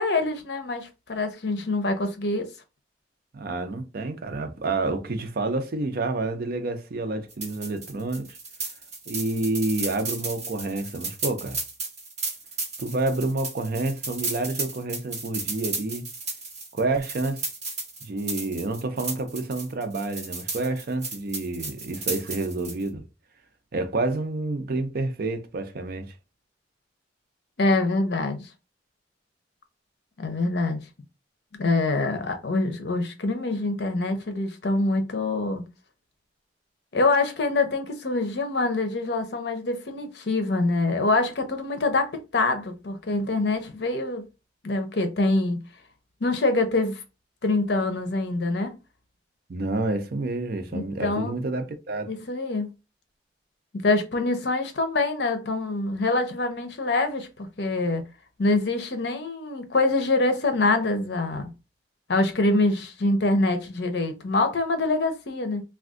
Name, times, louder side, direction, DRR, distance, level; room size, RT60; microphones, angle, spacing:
voice 1, 0.0-2.5 27.6-28.5 30.2-30.8 31.6-35.6 36.9-44.2 44.6-45.6 46.2-47.0 47.4-48.8 50.7-51.4 52.1-52.7 53.7-58.0 58.4-61.5 62.1-65.6, left 2 dB, 65° left, 0.7 m, -25 dB
voice 2, 3.3-8.4 9.1-11.6 12.8-16.1 16.7-17.5 18.0-23.0 23.7-26.1 49.5-52.1, right 2 dB, 55° right, 0.5 m, -29 dB
sound 1, 7.3-22.9, right 3 dB, 40° right, 1.2 m, -34 dB
2.5 x 2.3 x 3.5 m
head